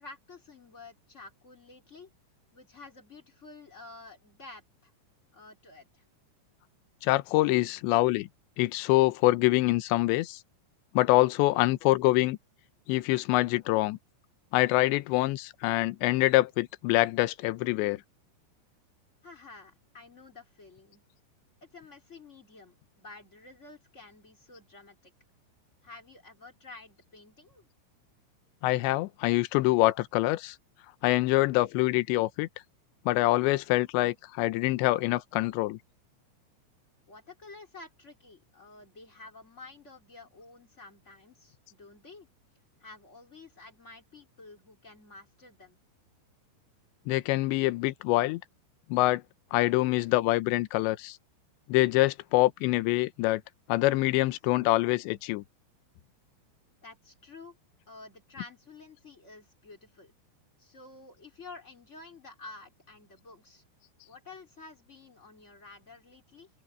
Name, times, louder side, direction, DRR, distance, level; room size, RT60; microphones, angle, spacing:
voice 1, 0.0-2.1 2.5-4.9 5.3-6.0 19.2-21.0 21.6-25.1 25.8-27.7 37.1-42.3 42.8-45.8 56.8-57.6 57.9-60.1 60.6-63.6 64.0-66.5, left 3 dB, 20° left, 2.5 m, -50 dB
voice 2, 7.0-8.3 8.6-10.4 10.9-12.4 12.9-14.0 14.5-18.0 28.6-30.6 31.0-32.5 33.1-35.8 47.1-48.4 48.9-49.2 49.5-51.2 51.7-53.4 53.7-55.4, left 19 dB, 75° left, 2.7 m, -25 dB
open air
omnidirectional pair, 5.9 m